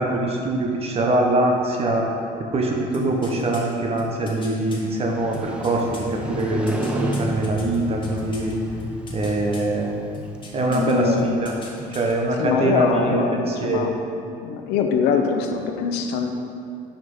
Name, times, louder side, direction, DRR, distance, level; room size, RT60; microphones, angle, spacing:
voice 1, 0.0-2.1 2.4-8.5 9.1-9.9 10.5-11.6 11.9-13.9, right 2 dB, 35° right, 0 dB, 1.1 m, -23 dB
sound 1, 2.9-4.8 5.3-8.5 8.8-9.7 10.1-10.9 11.2-12.1 12.4-12.5, left 2 dB, 30° left, 1.6 m, -40 dB
Motorcycle, 4.9-10.8, right 1 dB, 5° right, 0.7 m, -32 dB
voice 2, 10.6-11.4 12.4-14.0 14.4-16.3, left 5 dB, 80° left, 4 dB, 0.7 m, -23 dB
6.4 x 5.8 x 5.6 m, 2.5 s
cardioid pair, 105°, 17 cm